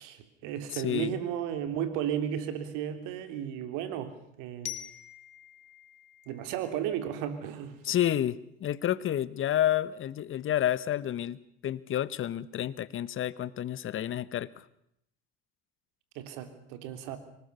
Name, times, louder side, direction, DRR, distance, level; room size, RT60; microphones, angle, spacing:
voice 1, 0.0-4.8 6.3-7.8 16.2-17.2, right 9 dB, 65° right, 9 dB, 3.4 m, -34 dB
voice 2, 0.7-1.2 7.8-14.5, left 11 dB, 40° left, 17 dB, 1.2 m, -30 dB
Glockenspiel, 4.6-7.5, left 15 dB, 75° left, 1.9 m, -45 dB
24.5 x 20.0 x 6.9 m, 0.72 s
hypercardioid pair, 85°, 33 cm